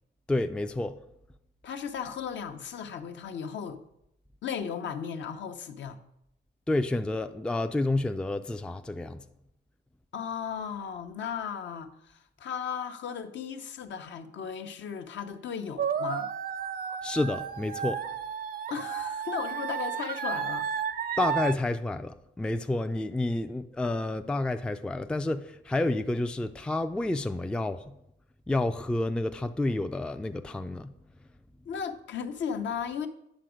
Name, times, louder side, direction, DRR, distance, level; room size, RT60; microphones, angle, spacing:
voice 1, 0.3-1.0 6.7-9.2 17.0-18.0 21.2-27.8 28.5-30.9, left 2 dB, 5° left, 0.4 m, -29 dB
voice 2, 1.6-3.8 4.4-6.0 10.1-16.3 18.7-20.7 31.7-33.1, left 7 dB, 65° left, 0.8 m, -36 dB
sound 1, 15.8-21.5, right 8 dB, 45° right, 0.5 m, -32 dB
9.0 x 6.0 x 5.0 m
cardioid pair, 90°, 20 cm